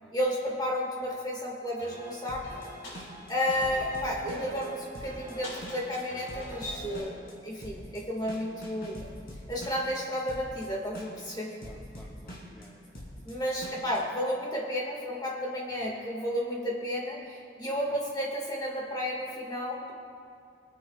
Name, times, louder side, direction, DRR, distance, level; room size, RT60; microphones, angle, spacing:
voice 1, 0.1-2.6 3.3-9.1 9.5-11.5 13.3-19.9, equal, 25° left, -2 dB, 1.8 m, -32 dB
sound 1, 1.8-7.0, right 1 dB, 90° left, 2.8 m, -43 dB
sound 2, 2.3-14.0, equal, 60° left, 2.9 m, -44 dB
voice 2, 11.6-13.0 15.8-15.9 17.9-18.0, equal, 5° left, -3 dB, 0.8 m, -54 dB
24.0 x 9.8 x 2.4 m, 2.3 s
head